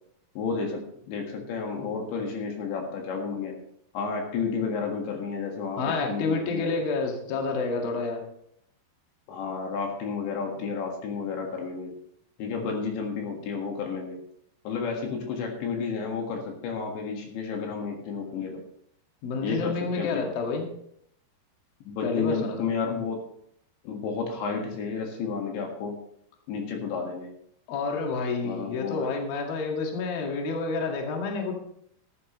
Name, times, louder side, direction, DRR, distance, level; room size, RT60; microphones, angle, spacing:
voice 1, 0.4-3.6 3.9-6.7 9.3-11.9 12.4-14.2 14.7-18.6 19.4-20.3 21.9-23.2 23.8-26.0 26.5-27.3 28.4-29.1, left 5 dB, 75° left, 1 dB, 4.0 m, -31 dB
voice 2, 5.8-8.2 15.1-15.2 19.2-20.7 22.0-22.6 27.7-31.5, left 3 dB, 60° left, 1 dB, 3.4 m, -29 dB
13.5 x 13.5 x 3.1 m, 0.69 s
omnidirectional pair, 5.2 m